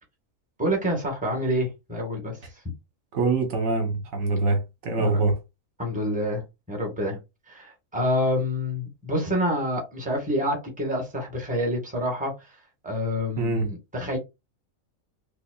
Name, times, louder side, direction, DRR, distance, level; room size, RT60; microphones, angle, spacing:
voice 1, 0.6-2.4 5.0-5.2 5.8-6.4 6.7-7.2 7.5-12.5 12.8-14.2, equal, 5° right, 1.2 m, -27 dB
voice 2, 3.1-5.4 13.4-13.7, right 3 dB, 80° right, 1.4 m, -24 dB
5.5 x 2.2 x 2.3 m
omnidirectional pair, 1.4 m